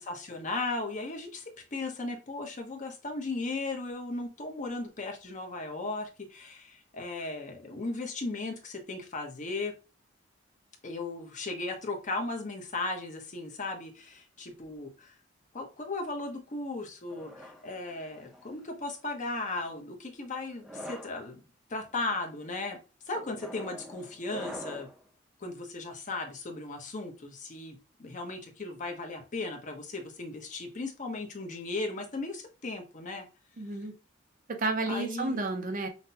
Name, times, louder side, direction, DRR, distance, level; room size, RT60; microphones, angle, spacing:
voice 1, 0.0-9.7 10.8-15.1 15.5-21.4 21.7-22.8 23.1-24.9 25.4-33.3 34.9-35.4, left 2 dB, 40° left, 2 dB, 0.9 m, -36 dB
sound 1, 17.1-18.5 19.3-19.7 20.5-21.2 21.9-22.2 23.1-25.0, equal, ahead, 0.6 m, -45 dB
voice 2, 33.6-33.9 34.5-35.9, right 2 dB, 45° right, 5 dB, 0.6 m, -31 dB
5.7 x 2.2 x 2.7 m, 0.32 s
head